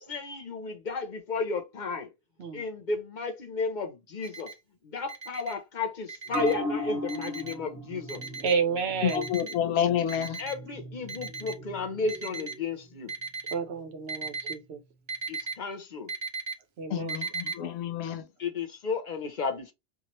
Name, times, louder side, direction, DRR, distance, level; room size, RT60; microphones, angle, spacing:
voice 1, 0.1-2.1 2.5-4.5 4.8-8.2 10.4-13.1 15.3-16.1 18.4-19.7, left 4 dB, 50° left, 0.7 m, -33 dB
Alarm, 4.2-4.5 5.1-5.5 6.1-6.5 7.1-7.5 8.1-8.5 9.1-9.6 10.1-10.6 11.1-11.6 12.1-12.6 13.1-13.6 14.1-14.5 15.1-15.5 16.1-16.5 17.1-17.5, right 4 dB, 35° right, 0.5 m, -36 dB
sound 1, 6.3-13.2 13.5-13.6, left 1 dB, 10° left, 1.3 m, -38 dB
voice 2, 8.4-9.3 13.5-14.8 16.8-17.2, right 5 dB, 85° right, 1.0 m, -30 dB
voice 3, 9.0-10.4 16.9-18.2, left 10 dB, 80° left, 0.9 m, -28 dB
2.9 x 2.5 x 2.9 m
omnidirectional pair, 1.1 m